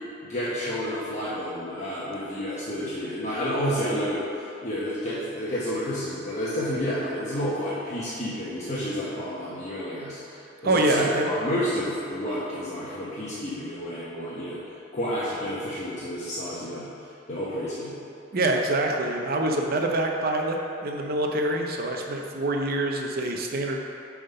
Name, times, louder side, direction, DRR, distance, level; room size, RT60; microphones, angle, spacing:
voice 1, 0.3-4.2 4.6-14.6 14.9-16.9 17.3-17.9, equal, 40° left, -9 dB, 0.9 m, -30 dB
voice 2, 10.6-11.3 18.3-23.8, right 2 dB, 50° right, 2 dB, 0.7 m, -25 dB
7.4 x 3.6 x 5.5 m, 2.7 s
head